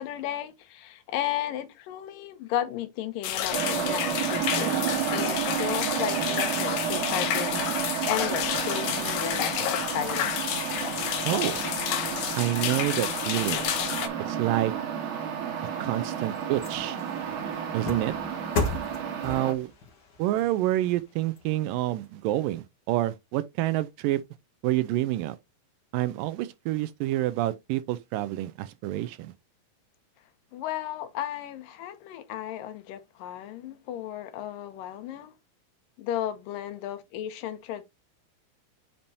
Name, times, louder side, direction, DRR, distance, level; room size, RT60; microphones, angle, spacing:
voice 1, 0.0-4.7 5.1-10.3 30.5-35.3 36.0-37.8, left 11 dB, 75° left, 2.5 m, -34 dB
sound 1, 3.2-14.1, left 10 dB, 90° left, 2.7 m, -30 dB
sound 2, 3.5-19.5, right 8 dB, 65° right, 2.4 m, -31 dB
voice 2, 11.3-11.6 12.4-13.6 14.3-14.7 15.8-17.0 17.7-18.1 19.2-19.7 20.2-24.2 24.6-25.4 25.9-29.3, right 15 dB, 80° right, 2.2 m, -28 dB
sound 3, 15.6-22.1 22.5-22.6, left 3 dB, 55° left, 1.2 m, -36 dB
8.7 x 4.5 x 2.8 m
omnidirectional pair, 4.2 m